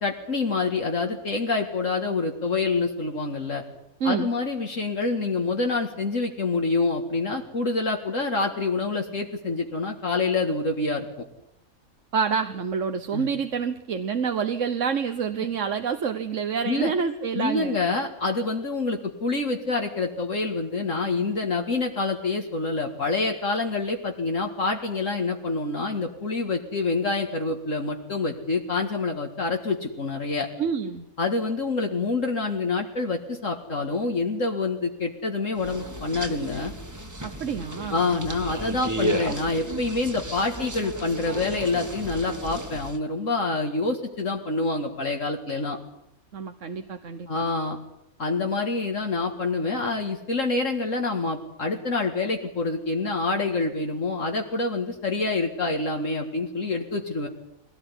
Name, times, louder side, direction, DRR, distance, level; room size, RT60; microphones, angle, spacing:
voice 1, 0.0-3.6 4.0-11.1 13.1-13.3 16.7-16.9 17.4-30.5 31.2-36.7 37.9-45.8 47.3-47.8 48.2-57.3, left 3 dB, 60° left, 2 dB, 2.3 m, -27 dB
voice 2, 12.1-17.8 30.6-31.1 37.2-38.2 46.3-47.4, right 6 dB, 60° right, 8 dB, 1.4 m, -27 dB
sound 1, 35.6-43.0, right 1 dB, 10° right, 1.8 m, -34 dB
22.5 x 18.0 x 9.8 m, 0.82 s
omnidirectional pair, 1.5 m